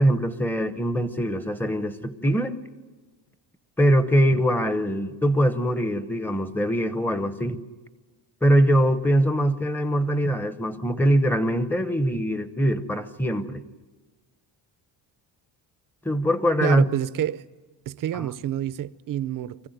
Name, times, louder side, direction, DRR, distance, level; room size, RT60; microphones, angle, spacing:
voice 1, 0.0-2.6 3.8-7.6 8.4-13.6 16.0-16.8 18.1-18.3, equal, 5° left, 0.9 m, -22 dB
voice 2, 16.6-17.4 17.9-19.7, right 11 dB, 45° right, 0.7 m, -28 dB
25.0 x 15.0 x 9.2 m
cardioid pair, 150°, 45 cm